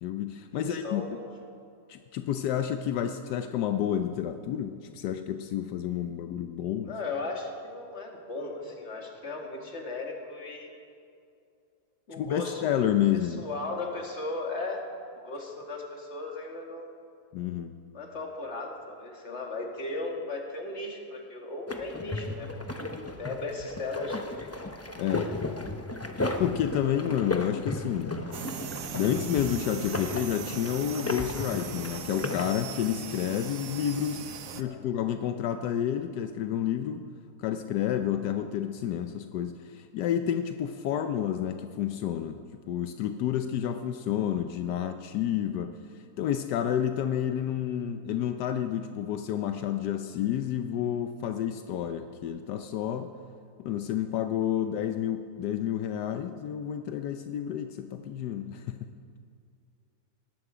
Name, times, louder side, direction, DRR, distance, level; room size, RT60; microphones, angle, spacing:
voice 1, 0.0-1.0 1.9-6.9 12.2-13.5 17.3-17.7 25.0-25.3 26.4-28.2 28.9-34.2 34.6-37.0 37.4-45.7 46.2-53.1 53.6-58.9, left 10 dB, 85° left, 8 dB, 1.2 m, -30 dB
voice 2, 0.5-1.2 6.8-10.7 12.1-12.6 13.4-14.8 15.2-17.0 17.9-24.5 34.4-34.8 54.5-54.6, left 3 dB, 45° left, 1 dB, 2.2 m, -36 dB
sound 1, 21.7-32.5, left 2 dB, 25° left, 0.3 m, -35 dB
sound 2, 28.3-34.6, right 7 dB, 60° right, 1.1 m, -39 dB
19.0 x 13.5 x 4.9 m, 2.5 s
omnidirectional pair, 1.8 m